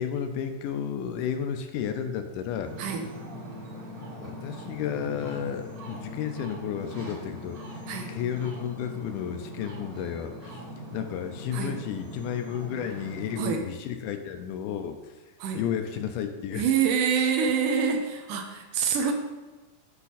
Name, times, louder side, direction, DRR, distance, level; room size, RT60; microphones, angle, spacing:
voice 1, 0.0-2.7 4.2-10.6 10.9-15.1 15.5-16.7, left 8 dB, 80° left, 7 dB, 2.1 m, -32 dB
Ocean, 2.6-13.5, equal, 55° right, 1.0 m, -41 dB
voice 2, 16.5-19.1, right 6 dB, 75° right, 4 dB, 2.3 m, -26 dB
8.3 x 6.0 x 4.1 m, 1.2 s
omnidirectional pair, 3.9 m